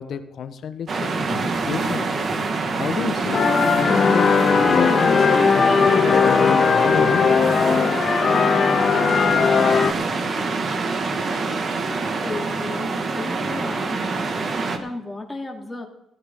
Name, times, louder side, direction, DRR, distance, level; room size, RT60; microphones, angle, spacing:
voice 1, 0.0-2.1 2.8-7.3, left 7 dB, 65° left, 9 dB, 1.3 m, -31 dB
sound 1, 0.9-14.8, right 3 dB, 45° right, 2.0 m, -25 dB
sound 2, 3.3-9.9, left 6 dB, 50° left, 0.8 m, -18 dB
voice 2, 12.2-14.0 14.8-15.8, left 2 dB, 15° left, 0 dB, 3.0 m, -33 dB
15.5 x 14.0 x 3.8 m, 0.84 s
cardioid pair, 90°, 0 cm